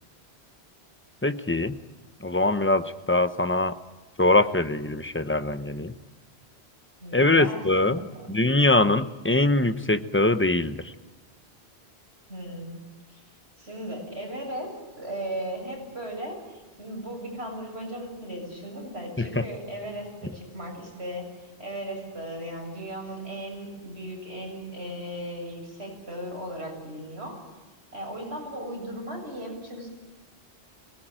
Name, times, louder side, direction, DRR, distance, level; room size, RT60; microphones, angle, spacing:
voice 1, 1.2-1.7 2.2-3.7 4.2-5.9 7.1-8.0 8.3-10.9 19.2-19.3, left 2 dB, 10° left, 10 dB, 0.9 m, -22 dB
voice 2, 7.0-8.4 12.3-13.2 13.6-27.4 27.9-29.9, right 1 dB, 75° right, 0 dB, 8.0 m, -37 dB
24.0 x 20.0 x 9.0 m, 1.2 s
omnidirectional pair, 1.1 m